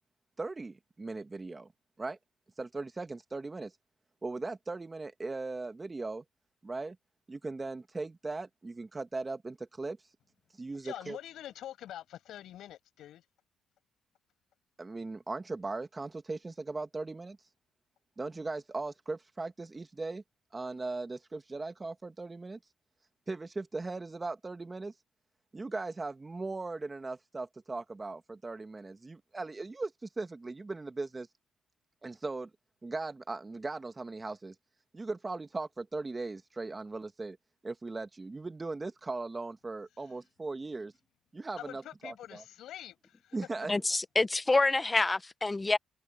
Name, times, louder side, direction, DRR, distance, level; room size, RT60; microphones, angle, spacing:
voice 1, 0.4-1.7 2.0-2.2 2.6-3.7 4.2-6.2 6.6-7.0 7.3-10.0 10.6-11.2 14.8-17.4 18.2-20.2 20.5-22.6 23.3-24.9 25.5-31.3 32.0-32.5 32.8-34.6 34.9-37.4 37.6-40.9 41.3-42.4 43.3-43.7, right 3 dB, 25° right, 2.3 m, -38 dB
voice 2, 10.8-13.3 39.9-40.2 41.6-43.4 43.9-44.0, left 12 dB, 80° left, 7.8 m, -46 dB
voice 3, 43.7-45.8, left 3 dB, 20° left, 0.9 m, -27 dB
cardioid pair, 90°, 0 cm